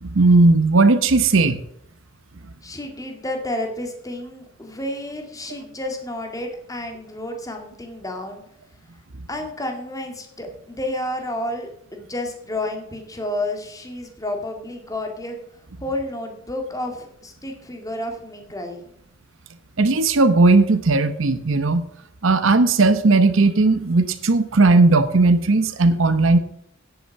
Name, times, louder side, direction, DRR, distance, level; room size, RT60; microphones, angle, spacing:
voice 1, 0.0-1.6 19.8-21.8 22.2-26.4, right 3 dB, 70° right, 10 dB, 0.9 m, -16 dB
voice 2, 2.6-8.4 9.3-15.4 15.8-18.9, left 1 dB, 15° left, 3 dB, 2.0 m, -30 dB
10.0 x 8.0 x 5.9 m, 0.72 s
head